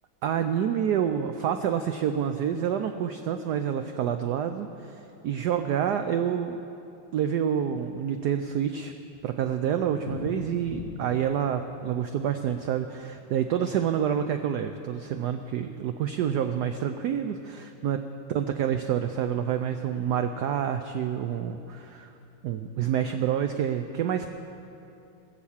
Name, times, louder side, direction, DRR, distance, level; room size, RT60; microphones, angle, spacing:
voice 1, 0.2-6.6 7.1-8.9 9.2-18.0 18.3-22.1 22.4-24.3, right 9 dB, 80° right, 7 dB, 0.9 m, -28 dB
Thunder, 8.8-14.4 14.7-14.8 15.1-15.2 15.4-15.5 16.1-16.4, left 4 dB, 35° left, 1.5 m, -43 dB
19.5 x 7.3 x 7.1 m, 2.8 s
omnidirectional pair, 2.3 m